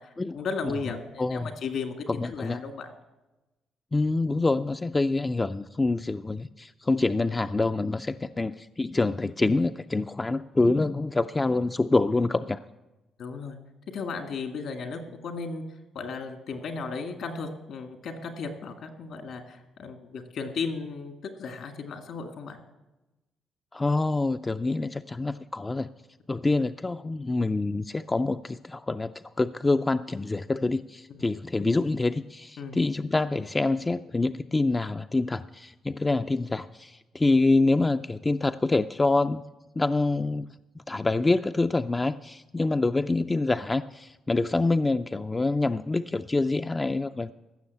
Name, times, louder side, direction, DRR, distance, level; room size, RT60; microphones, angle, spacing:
voice 1, 0.0-2.9 13.2-13.6 13.9-15.6 15.9-21.1 21.4-22.6 31.2-31.3 32.6-32.8, left 4 dB, 70° left, 6 dB, 1.8 m, -35 dB
voice 2, 1.2-1.5 2.2-2.6 3.9-12.6 23.7-25.9 26.3-39.4 39.8-40.5 40.9-47.3, left 2 dB, 20° left, 9 dB, 0.3 m, -26 dB
15.5 x 6.4 x 8.3 m, 1.1 s
cardioid pair, 90°, 0 cm